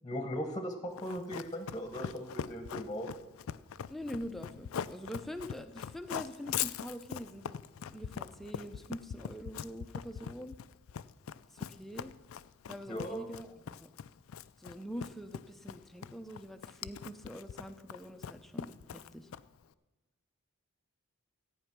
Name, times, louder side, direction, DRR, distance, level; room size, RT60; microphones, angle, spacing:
voice 1, 0.0-3.1 12.9-13.2, equal, 20° left, 7 dB, 1.0 m, -38 dB
Run, 1.0-19.6, left 8 dB, 70° left, 0.4 m, -41 dB
voice 2, 3.9-7.6 7.9-10.6 11.5-12.1 12.7-13.9 14.6-19.3, equal, ahead, 7 dB, 0.6 m, -44 dB
14.0 x 8.8 x 6.0 m, 1.2 s
head